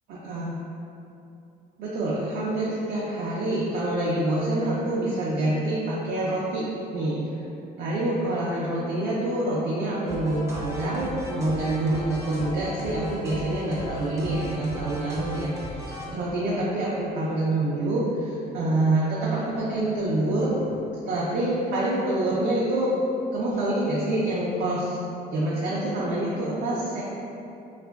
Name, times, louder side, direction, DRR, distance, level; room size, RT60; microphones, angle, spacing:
voice 1, 0.1-0.6 1.8-7.2 7.8-15.5 16.1-20.7 21.1-22.9 23.3-25.0 25.3-27.0, right 1 dB, 65° right, -6 dB, 0.5 m, -26 dB
sound 1, 10.1-16.1, right 1 dB, 15° right, 0.5 m, -37 dB
2.8 x 2.4 x 2.2 m, 2.7 s
cardioid pair, 110°, 17 cm